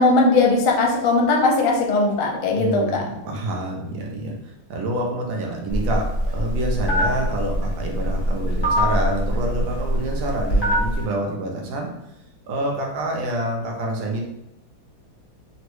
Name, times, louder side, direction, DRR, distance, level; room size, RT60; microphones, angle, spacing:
voice 1, 0.0-3.0, left 3 dB, 80° left, 0 dB, 1.4 m, -19 dB
voice 2, 2.5-11.9 12.5-14.2, right 1 dB, 75° right, 0 dB, 1.3 m, -27 dB
Telephone, 5.7-11.0, equal, 15° left, 0.8 m, -23 dB
3.7 x 2.1 x 3.0 m, 0.84 s
omnidirectional pair, 2.3 m